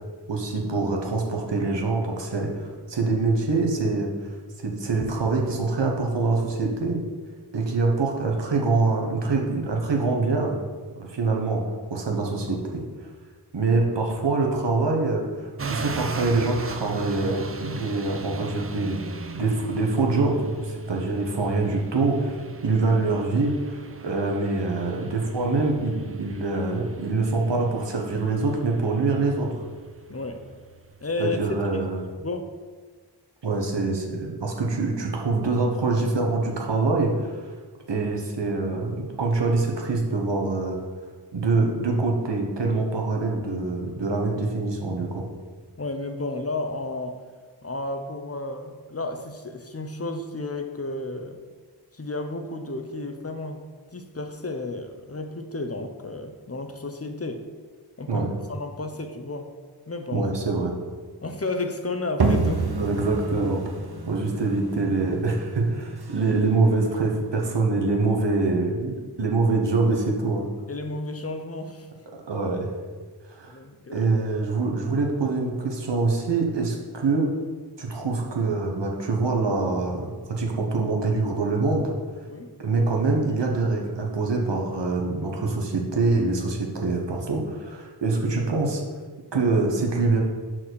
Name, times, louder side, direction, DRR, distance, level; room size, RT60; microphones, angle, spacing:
voice 1, 0.3-4.1 4.6-7.0 7.5-10.6 11.0-11.6 11.9-12.8 13.5-19.0 19.3-29.6 31.2-32.0 33.4-37.4 37.9-40.8 41.3-45.2 58.1-58.3 60.1-60.7 62.8-63.6 64.1-70.5 72.3-72.7 73.3-73.6 73.9-77.3 77.8-81.9 82.6-88.8 89.3-90.2, right 3 dB, 85° right, 0 dB, 1.2 m, -25 dB
sound 1, 15.6-32.1, right 4 dB, 35° right, 0.5 m, -38 dB
voice 2, 30.1-30.4 31.0-31.9 32.2-32.5 45.8-47.2 47.6-51.4 51.9-53.7 53.9-57.4 58.0-59.5 59.9-60.3 61.2-62.7 70.7-71.9 73.5-74.1 82.3-82.5, left 2 dB, 35° left, 6 dB, 0.8 m, -32 dB
sound 2, 62.2-67.7, right 3 dB, 65° right, 0.9 m, -29 dB
5.9 x 4.8 x 6.3 m, 1.5 s
wide cardioid pair, 50°, 41 cm